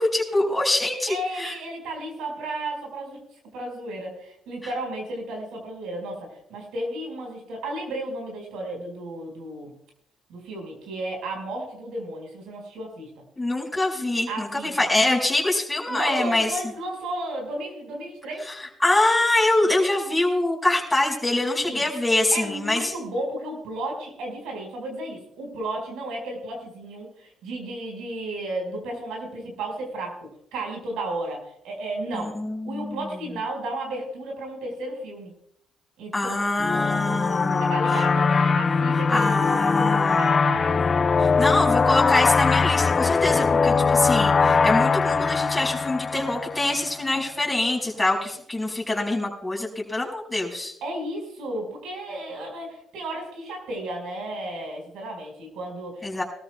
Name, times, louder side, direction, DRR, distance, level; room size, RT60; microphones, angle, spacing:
voice 1, 0.0-1.5 13.4-16.5 18.8-22.9 32.1-33.0 36.1-37.7 39.1-40.3 41.2-50.7 56.0-56.2, left 2 dB, 10° left, -3 dB, 5.4 m, -24 dB
voice 2, 1.1-3.2 3.5-9.7 10.3-13.1 14.3-14.9 15.9-18.4 21.6-21.8 22.3-32.3 32.6-35.3 36.0-36.7 37.6-41.6 50.8-56.2, right 1 dB, 80° right, 2 dB, 5.1 m, -33 dB
sound 1, 36.6-47.0, left 5 dB, 40° left, 0.4 m, -21 dB
22.5 x 13.5 x 2.3 m, 0.69 s
supercardioid pair, 65°, 0 cm